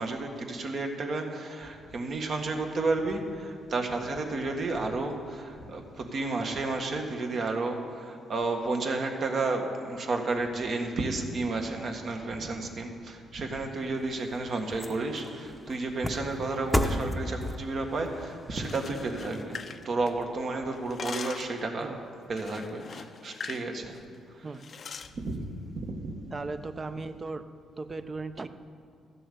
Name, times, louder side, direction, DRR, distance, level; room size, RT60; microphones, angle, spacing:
voice 1, 0.0-22.0 22.3-24.0 24.3-24.6 25.1-25.4 25.8-26.1, right 3 dB, 55° right, 3 dB, 1.6 m, -32 dB
sound 1, 13.7-20.2 20.7-20.8, left 1 dB, 5° left, 0.9 m, -35 dB
sound 2, 18.5-20.4 20.7-21.6 22.4-23.7 24.0-24.1 24.6-25.1, left 6 dB, 45° left, 0.5 m, -41 dB
voice 2, 26.3-27.5 27.8-28.5, right 3 dB, 30° right, 10 dB, 0.7 m, -37 dB
14.0 x 7.7 x 6.8 m, 2.4 s
cardioid pair, 90°, 0 cm